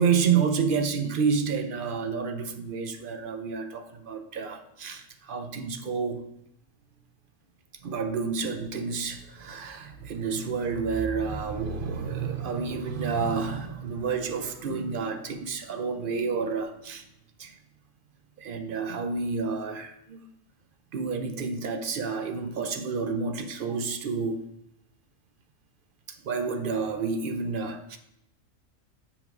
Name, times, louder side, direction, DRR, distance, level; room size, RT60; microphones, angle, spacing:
voice 1, 0.0-6.3 7.8-17.1 17.4-17.6 18.4-20.2 20.9-24.5 26.1-28.0, right 5 dB, 55° right, 0.6 m, -29 dB
7.2 x 3.5 x 4.6 m
omnidirectional pair, 1.3 m